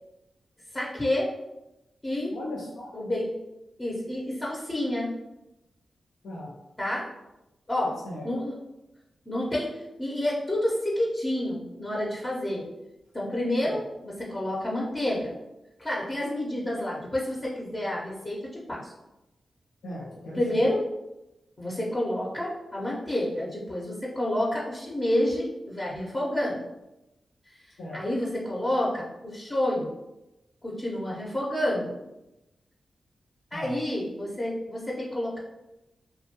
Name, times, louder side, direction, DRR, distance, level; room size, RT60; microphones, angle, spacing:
voice 1, 0.7-1.3 2.0-2.4 2.9-3.3 3.8-5.1 6.8-7.1 7.7-8.0 8.2-8.6 9.3-12.6 13.1-15.3 15.8-18.9 20.3-20.8 21.6-26.6 27.9-29.9 30.6-32.0 33.5-35.4, left 1 dB, 30° left, -4 dB, 0.6 m, -29 dB
voice 2, 2.3-2.9 6.2-6.5 8.0-8.3 13.6-13.8 19.8-20.4 27.8-28.0 33.5-33.7, left 1 dB, 80° left, -5 dB, 0.5 m, -37 dB
2.2 x 2.1 x 2.8 m, 0.94 s
supercardioid pair, 40°, 0 cm